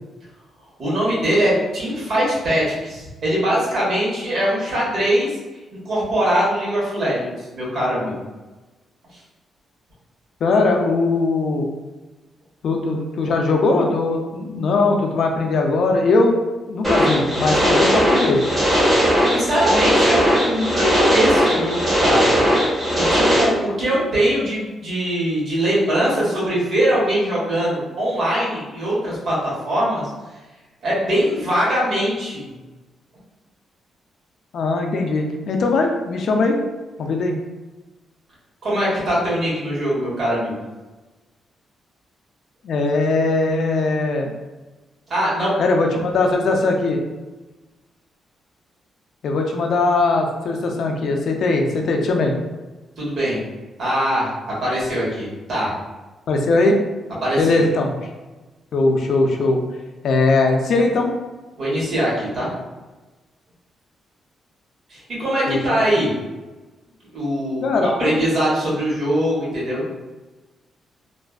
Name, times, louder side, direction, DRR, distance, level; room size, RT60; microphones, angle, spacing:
voice 1, 0.8-5.3 5.8-8.2 19.3-22.3 23.0-30.1 30.8-32.5 38.6-40.6 45.1-45.5 53.0-53.4 53.8-55.7 57.2-57.6 61.6-62.5 64.9-66.1 67.1-69.8, equal, 55° right, -6 dB, 1.2 m, -22 dB
voice 2, 10.4-11.7 12.6-16.4 16.7-18.4 34.5-36.6 37.0-37.4 42.6-44.3 45.6-47.0 49.2-52.3 56.3-56.8 57.4-58.1 58.7-59.6 60.0-61.1 65.5-65.8 67.6-68.2, left 3 dB, 65° left, 2 dB, 0.4 m, -20 dB
sound 1, 16.8-23.4, equal, 15° right, 1.2 m, -18 dB
2.5 x 2.2 x 2.3 m, 1.2 s
cardioid pair, 110°, 0 cm